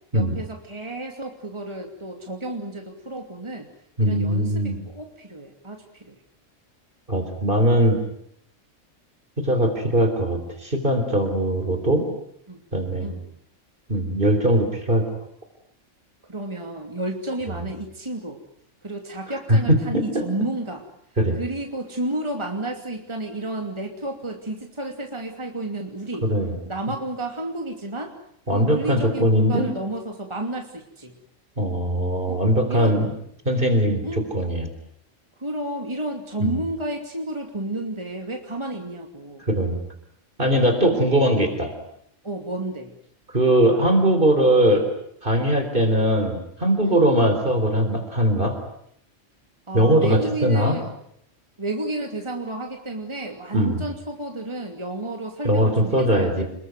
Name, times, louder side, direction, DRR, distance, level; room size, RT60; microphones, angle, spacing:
voice 1, 0.1-3.7 4.0-6.2 12.5-12.6 13.0-13.2 16.3-18.4 18.8-20.8 21.3-26.3 26.7-28.1 28.5-31.1 32.3-32.4 32.7-32.9 34.0-34.3 35.4-39.4 40.9-41.1 42.2-42.9 43.6-43.7 46.8-47.0 49.7-50.9 51.6-56.4, right 1 dB, 20° right, 3 dB, 2.8 m, -31 dB
voice 2, 4.0-4.8 7.1-8.0 9.4-12.0 12.7-13.1 13.9-15.0 19.5-20.2 21.2-21.4 26.2-26.5 28.5-29.7 31.6-33.1 33.5-34.7 36.4-36.6 39.4-39.8 40.4-41.7 43.3-44.9 45.2-48.5 49.7-50.8 53.5-53.9 55.4-56.4, right 1 dB, 40° right, 6 dB, 4.0 m, -20 dB
28.5 x 21.5 x 9.4 m, 0.72 s
omnidirectional pair, 1.3 m